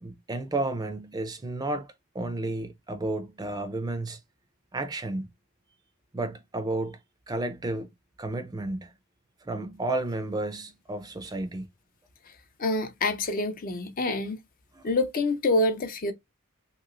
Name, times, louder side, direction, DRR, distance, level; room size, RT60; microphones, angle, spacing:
voice 1, 0.0-4.2 4.7-5.3 6.1-7.0 7.3-7.9 8.2-8.9 9.4-11.6 14.7-14.8, right 2 dB, 20° right, 0.4 m, -32 dB
voice 2, 12.6-14.4 14.8-16.1, left 2 dB, 40° left, 0.5 m, -26 dB
3.0 x 2.8 x 2.5 m
head